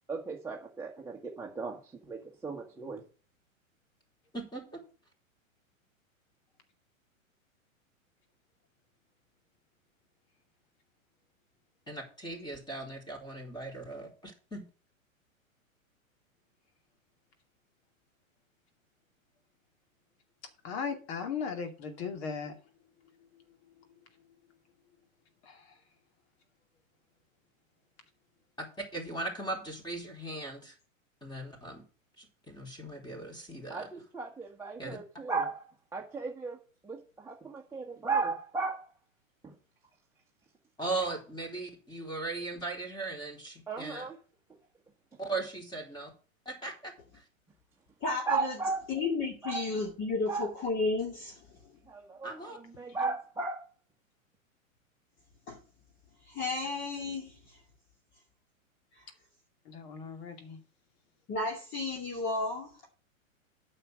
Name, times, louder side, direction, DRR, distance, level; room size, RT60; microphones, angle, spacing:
voice 1, 0.1-3.0 33.7-36.6 36.8-38.9 39.4-39.5 43.7-44.2 48.3-48.8 49.4-49.7 50.3-50.5 51.9-53.7, right 4 dB, 5° right, -3 dB, 1.5 m, -35 dB
voice 2, 4.3-4.8 11.9-14.6 28.6-28.7 28.9-30.7 31.2-31.8 32.2-33.9 34.8-35.0 40.8-44.1 45.2-46.1 46.5-47.2 52.2-52.6, right 2 dB, 10° left, 1 dB, 3.9 m, -38 dB
voice 3, 20.6-22.5 25.5-25.7 59.7-60.6, left 6 dB, 50° left, 5 dB, 2.4 m, -37 dB
voice 4, 48.0-48.6 48.9-51.4 55.5-55.6 56.3-57.4 61.3-62.7, left 3 dB, 30° left, 1 dB, 2.4 m, -32 dB
9.1 x 6.5 x 6.3 m, 0.38 s
hypercardioid pair, 110°, 41 cm